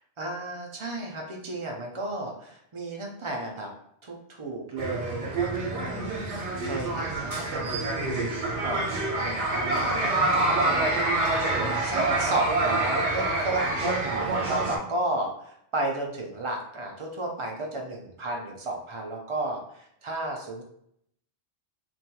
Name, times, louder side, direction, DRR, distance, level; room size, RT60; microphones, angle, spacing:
voice 1, 0.2-3.7 4.0-20.6, right 1 dB, 50° right, 0 dB, 0.3 m, -34 dB
sound 1, 4.8-14.8, right 2 dB, 85° right, 1.0 m, -27 dB
3.1 x 2.2 x 2.8 m, 0.71 s
omnidirectional pair, 1.2 m